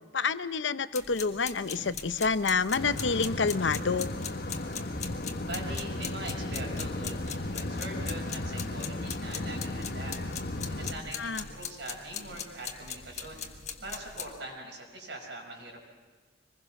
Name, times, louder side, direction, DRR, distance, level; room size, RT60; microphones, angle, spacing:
voice 1, 0.1-4.1 11.2-11.4, left 4 dB, 80° left, 13 dB, 0.8 m, -28 dB
sound 1, 0.9-14.4, left 7 dB, 35° left, 1.5 m, -41 dB
sound 2, 2.7-10.9, left 2 dB, 55° left, 1.1 m, -35 dB
voice 2, 5.4-10.2 10.7-13.4 13.8-15.8, right 2 dB, 70° right, 0 dB, 5.6 m, -42 dB
25.0 x 20.5 x 5.9 m, 1.4 s
head